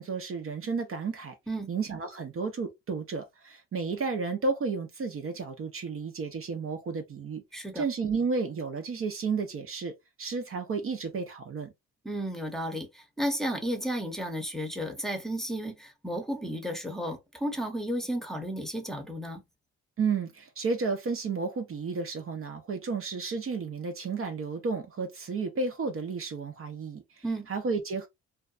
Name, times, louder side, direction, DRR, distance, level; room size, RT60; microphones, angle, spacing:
voice 1, 0.0-1.4 1.7-7.4 7.8-11.7 20.0-28.1, right 4 dB, 45° right, 0.6 m, -32 dB
voice 2, 7.5-7.8 12.0-19.4 27.2-27.5, equal, ahead, 0.8 m, -33 dB
2.5 x 2.2 x 2.4 m
cardioid pair, 75°, 30 cm